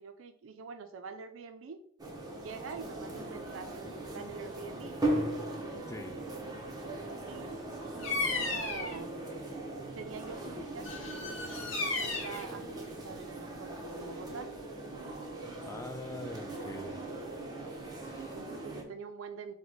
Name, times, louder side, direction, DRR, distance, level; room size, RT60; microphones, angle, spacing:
voice 1, 0.0-1.8 2.4-5.0 7.3-7.6 7.9-9.2 9.9-14.5 18.3-19.5, right 5 dB, 75° right, 7 dB, 0.4 m, -45 dB
sound 1, 2.0-18.8, right 1 dB, 20° right, 0.6 m, -39 dB
Bird vocalization bird call bird song, 8.0-9.0 10.8-12.4, left 3 dB, 70° left, 0.9 m, -34 dB
voice 2, 15.6-17.1 18.0-18.4, left 2 dB, 15° left, 6 dB, 0.4 m, -43 dB
3.9 x 2.1 x 4.5 m, 0.66 s
head